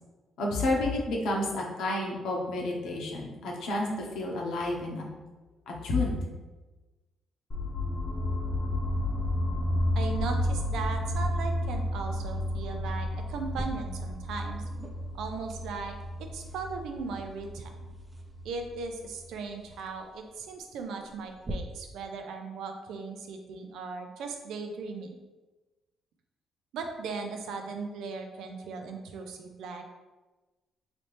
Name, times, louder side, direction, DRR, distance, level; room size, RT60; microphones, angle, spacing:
voice 1, 0.4-5.0 5.7-6.2, left 2 dB, 80° left, -1 dB, 0.9 m, -30 dB
sound 1, 7.5-19.4, left 1 dB, 35° left, 0.8 m, -32 dB
voice 2, 9.9-14.6 15.1-17.7 18.4-25.2 26.7-29.8, right 4 dB, 80° right, 4 dB, 0.5 m, -38 dB
Hair being brushed, 13.1-21.5, right 1 dB, 25° right, 0.6 m, -47 dB
4.1 x 2.8 x 3.3 m, 1.2 s
cardioid pair, 90°, 0 cm